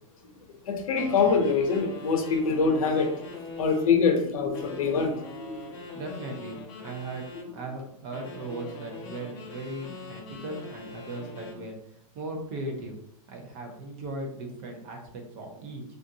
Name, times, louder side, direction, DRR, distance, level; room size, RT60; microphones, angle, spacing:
voice 1, 0.7-5.1 5.4-5.5, left 5 dB, 75° left, 4 dB, 0.8 m, -24 dB
sound 1, 0.9-4.0 4.5-7.5 8.1-11.6, left 3 dB, 25° left, 0.6 m, -42 dB
voice 2, 5.9-7.3 7.5-11.8 12.1-13.0 13.3-15.8, right 2 dB, 25° right, 2 dB, 0.6 m, -38 dB
3.5 x 2.5 x 2.7 m, 0.73 s
supercardioid pair, 170°, 18 cm